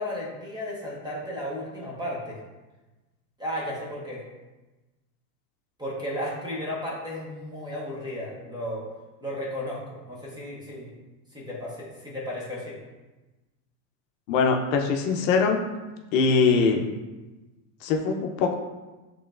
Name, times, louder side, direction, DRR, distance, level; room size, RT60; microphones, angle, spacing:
voice 1, 0.0-2.4 3.4-4.2 5.8-8.8 9.2-10.9 11.3-12.8, left 1 dB, 10° right, -4 dB, 0.7 m, -34 dB
voice 2, 14.3-15.6 16.1-16.8 17.8-18.5, left 4 dB, 55° left, 2 dB, 0.6 m, -22 dB
6.7 x 3.1 x 2.4 m, 1.1 s
supercardioid pair, 140°, 49 cm